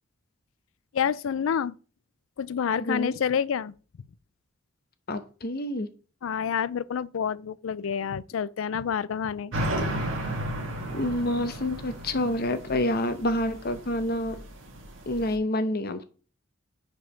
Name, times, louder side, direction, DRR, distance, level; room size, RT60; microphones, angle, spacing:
voice 1, 0.9-1.8 2.4-3.7 6.2-9.5, left 7 dB, 85° left, 0.4 m, -28 dB
voice 2, 2.8-3.1 5.1-5.9 10.9-14.4 15.1-16.0, left 1 dB, 50° left, 0.8 m, -28 dB
sound 1, 9.5-15.3, right 1 dB, 70° right, 1.6 m, -34 dB
5.1 x 4.7 x 5.6 m
head